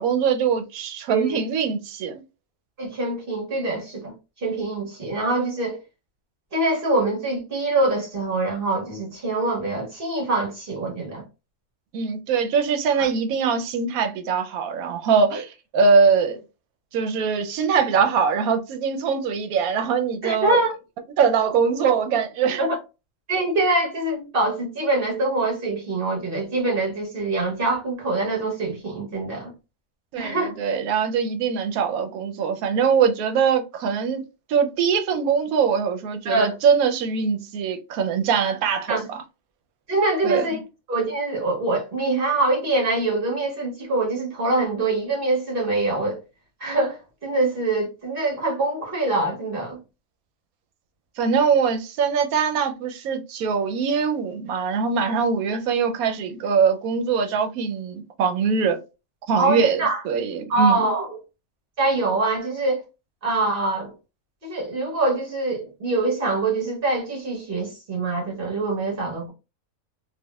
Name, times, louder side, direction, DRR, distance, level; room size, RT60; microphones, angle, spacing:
voice 1, 0.0-2.2 11.9-16.4 16.9-20.6 21.2-22.6 30.1-34.2 34.5-39.0 40.2-40.6 51.2-58.8 59.3-60.9, right 6 dB, 85° right, 1.0 m, -22 dB
voice 2, 1.1-1.4 2.8-5.8 6.5-11.2 13.0-13.1 15.3-15.4 20.2-20.7 22.6-22.8 23.3-29.5 30.2-30.5 36.2-36.5 38.9-39.0 39.9-40.6 40.9-46.2 46.6-49.8 59.4-60.0 60.5-61.1 61.8-62.8 63.2-63.9 64.4-69.3, right 2 dB, 40° right, 1.4 m, -24 dB
3.5 x 2.4 x 2.2 m
omnidirectional pair, 1.5 m